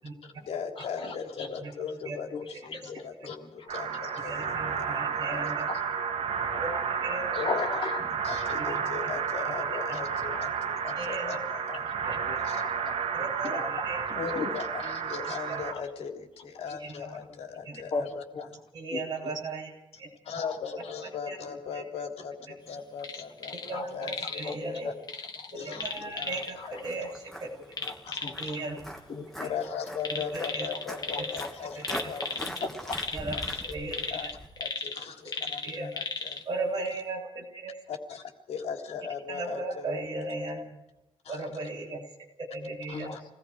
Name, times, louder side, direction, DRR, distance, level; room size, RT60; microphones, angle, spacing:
voice 1, 0.2-5.8 7.3-7.7 8.0-11.8 12.4-12.6 14.2-18.6 20.3-24.7 25.5-25.9 26.1-26.6 28.1-28.3 29.4-32.7 33.3-36.4 37.9-40.0 41.2-41.5 42.9-43.2, left 6 dB, 80° left, 2 dB, 3.5 m, -39 dB
voice 2, 0.8-1.5 2.3-2.4 2.7-2.8 4.8-5.4 5.7-5.8 6.4-6.8 7.3-8.0 8.5-8.9 9.5-9.6 12.3-13.0 13.4-13.7 14.2-14.5 15.7-15.8 17.9-18.1 18.3-18.4 18.9-19.0 20.3-20.5 23.7-24.1 24.4-24.5 24.8-24.9 25.4-25.8 26.6-26.7 28.0-28.3 29.1-29.5 31.1-31.2 32.4-33.0 42.9-43.3, left 4 dB, 55° left, -1 dB, 4.5 m, -37 dB
sound 1, 3.7-15.7, right 6 dB, 75° right, 2.1 m, -31 dB
voice 3, 4.2-5.7 6.6-7.4 8.6-9.1 9.4-9.5 9.9-10.0 10.9-12.5 13.1-14.2 15.5-15.6 16.7-17.2 17.6-17.8 18.7-20.1 21.3-21.4 21.7-21.8 23.6-25.0 25.6-27.5 28.4-28.9 29.4-29.5 30.1-30.7 31.2-31.3 31.7-32.1 33.1-34.3 35.4-35.9 36.4-37.9 39.3-40.8 41.3-43.1, right 2 dB, 40° right, -1 dB, 7.5 m, -37 dB
sound 2, 23.0-23.7 24.0-24.5 25.1-26.5 27.7-28.6 30.0-31.5 31.8-36.4 36.9-37.0, left 4 dB, 40° left, 2.0 m, -36 dB
Walk footsteps, 25.8-34.5, equal, 5° left, 2.7 m, -42 dB
28.5 x 20.0 x 4.9 m, 0.90 s
wide cardioid pair, 180°, 11 cm